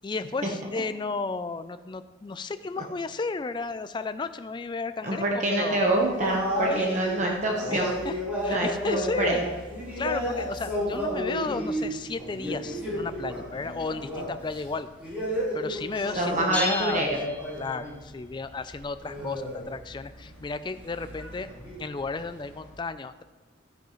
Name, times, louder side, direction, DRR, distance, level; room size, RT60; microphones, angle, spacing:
voice 1, 0.0-5.2 5.5-5.9 6.7-7.0 7.7-8.1 8.4-9.4 10.0-14.9 15.5-17.1 17.6-21.5 21.8-23.2, left 4 dB, 25° left, 11 dB, 0.3 m, -33 dB
voice 2, 5.0-8.0 8.5-9.4 16.2-17.1, right 1 dB, 40° right, 0 dB, 1.0 m, -26 dB
sound 1, 5.8-18.0 18.2-22.7, equal, 10° right, 3.8 m, -33 dB
sound 2, 16.5-18.1, left 2 dB, 10° left, 0.9 m, -34 dB
12.5 x 10.5 x 3.1 m, 1.2 s
head